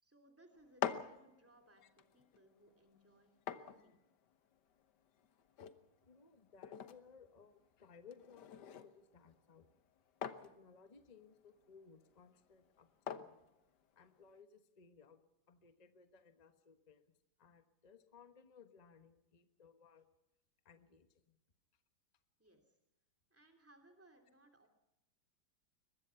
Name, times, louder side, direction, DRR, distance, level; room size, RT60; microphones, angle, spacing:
voice 1, 0.0-4.0 22.4-22.7 23.3-24.7, right 1 dB, 10° right, 4 dB, 2.8 m, -66 dB
sound 1, 0.5-14.4, left 9 dB, 80° left, 1.7 m, -49 dB
voice 2, 6.0-9.7 10.4-13.4 14.0-15.2 15.5-17.0 17.4-20.1 20.6-21.4, left 5 dB, 25° left, 9 dB, 1.2 m, -62 dB
22.5 x 21.5 x 5.8 m, 0.90 s
omnidirectional pair, 1.8 m